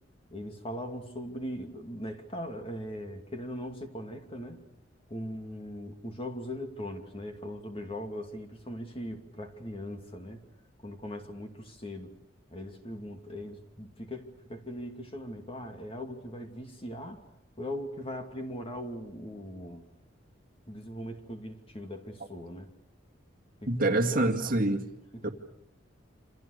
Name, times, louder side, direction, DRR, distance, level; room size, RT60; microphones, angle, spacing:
voice 1, 0.3-4.6 5.1-10.4 10.8-12.2 12.5-17.2 17.6-19.9 20.7-22.7 23.6-23.7 24.1-24.3 25.1-25.3, equal, 30° left, 2.7 m, -40 dB
voice 2, 23.7-24.9 25.2-25.3, right 2 dB, 45° right, 2.3 m, -26 dB
28.0 x 27.0 x 6.7 m
head